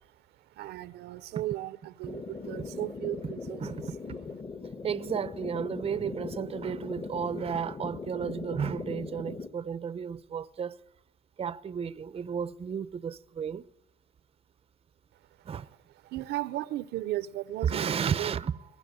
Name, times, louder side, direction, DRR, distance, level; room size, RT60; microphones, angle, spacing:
voice 1, 0.6-3.7 16.0-18.3, right 15 dB, 80° right, 1.0 m, -35 dB
sound 1, 2.1-9.5, left 4 dB, 30° left, 1.8 m, -40 dB
voice 2, 4.8-10.8 11.4-13.6 15.5-15.7 17.6-18.5, right 7 dB, 35° right, 0.8 m, -33 dB
22.0 x 21.5 x 9.4 m
cardioid pair, 110°, 17 cm